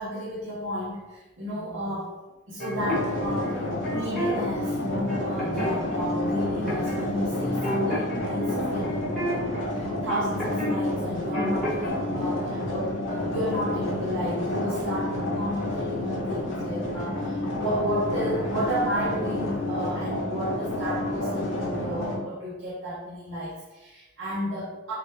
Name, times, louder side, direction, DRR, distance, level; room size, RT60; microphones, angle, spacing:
voice 1, 0.0-2.2 2.5-24.9, equal, 65° right, -7 dB, 0.7 m, -32 dB
sound 1, 2.6-4.3 4.8-6.0 6.7-7.0 7.3-10.8 11.0-11.9, equal, ahead, 1.0 m, -32 dB
sound 2, 2.7-22.2, left 1 dB, 65° left, 0.7 m, -29 dB
3.1 x 2.3 x 3.0 m, 1.1 s
head